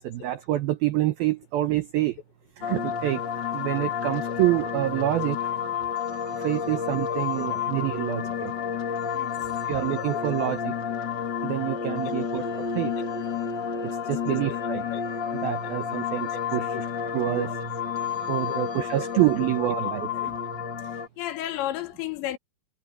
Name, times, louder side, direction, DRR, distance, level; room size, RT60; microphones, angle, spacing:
voice 1, 0.0-2.2 2.6-3.2 3.5-5.4 6.4-8.5 9.6-10.7 11.4-12.9 13.8-14.8 15.3-16.8 17.1-17.6 18.3-20.4, right 15 dB, 85° right, 2.1 m, -27 dB
sound 1, 2.6-21.1, left 7 dB, 55° left, 1.2 m, -30 dB
voice 2, 21.2-22.4, left 13 dB, 75° left, 3.2 m, -32 dB
omnidirectional pair, 5.6 m